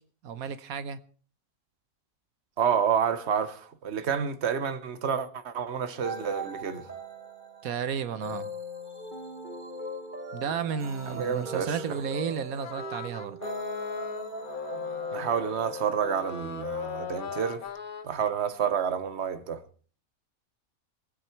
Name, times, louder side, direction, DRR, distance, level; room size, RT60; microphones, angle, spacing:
voice 1, 0.2-1.0 7.6-8.5 10.3-13.4, right 7 dB, 85° right, 1.3 m, -33 dB
voice 2, 2.6-6.9 11.1-11.8 15.1-17.6 18.0-19.6, right 7 dB, 50° right, 1.4 m, -29 dB
sound 1, 6.0-17.7, right 2 dB, 35° right, 1.8 m, -41 dB
sound 2, 12.6-18.1, left 6 dB, 90° left, 1.6 m, -37 dB
23.5 x 9.2 x 4.5 m
omnidirectional pair, 1.5 m